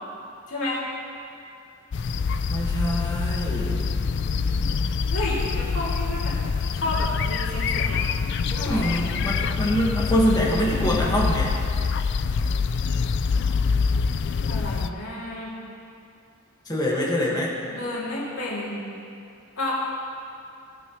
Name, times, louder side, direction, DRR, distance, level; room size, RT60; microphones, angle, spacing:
voice 1, 0.5-0.8 5.1-6.4 6.7-8.0 8.6-8.9 10.3-11.1 13.3-13.6 14.5-15.5 17.7-18.8 19.6-19.7, left 2 dB, 65° left, -7 dB, 2.8 m, -31 dB
sound 1, 1.9-14.9, left 5 dB, 50° left, 0.3 m, -25 dB
voice 2, 2.5-3.8 8.5-11.5 16.7-17.5, equal, 20° left, -5 dB, 1.7 m, -24 dB
17.5 x 9.2 x 3.2 m, 2.5 s
head